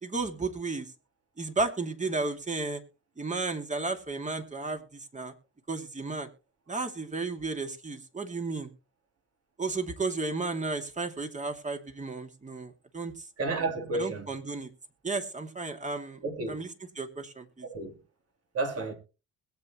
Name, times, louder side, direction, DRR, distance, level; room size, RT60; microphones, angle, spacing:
voice 1, 0.0-0.9 1.4-2.8 3.2-5.3 5.7-6.3 6.7-8.7 9.6-13.1 13.9-14.7 15.0-16.2 16.5-17.7, right 3 dB, 25° right, 2.5 m, -33 dB
voice 2, 13.4-14.3 16.2-16.6 17.7-17.9 18.5-18.9, right 3 dB, 55° right, 3.8 m, -31 dB
21.5 x 8.3 x 3.1 m
cardioid pair, 90°, 30 cm